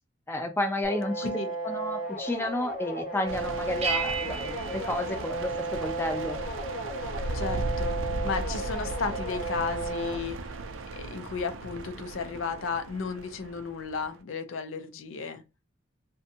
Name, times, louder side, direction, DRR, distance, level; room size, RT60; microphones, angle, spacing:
voice 1, 0.3-1.3 1.6-5.5 5.8-6.4, left 1 dB, 10° left, 0.4 m, -31 dB
sound 1, 0.8-10.2, right 2 dB, 40° left, 0.8 m, -34 dB
sound 2, 3.3-14.1, right 2 dB, 80° right, 0.4 m, -37 dB
sound 3, 3.8-6.0, right 5 dB, 35° right, 0.6 m, -34 dB
voice 2, 7.3-10.4 10.9-15.4, left 5 dB, 80° left, 0.5 m, -34 dB
2.6 x 2.2 x 2.7 m
head